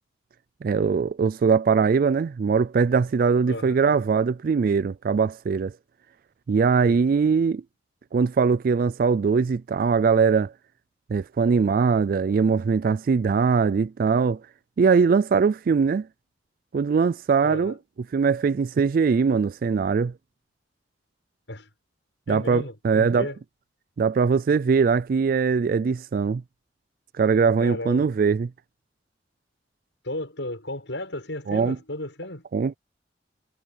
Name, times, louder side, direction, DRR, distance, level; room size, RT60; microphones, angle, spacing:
voice 1, 0.6-5.7 6.5-7.6 8.1-10.5 11.1-14.4 14.8-16.1 16.7-17.7 18.1-20.1 22.3-23.3 24.0-26.4 27.2-28.5 31.5-31.8 32.5-32.8, right 5 dB, 50° right, 0.3 m, -21 dB
voice 2, 17.4-17.8 21.5-21.7 22.3-23.4 27.6-28.1 30.0-32.4, left 1 dB, 80° left, 7.3 m, -34 dB
head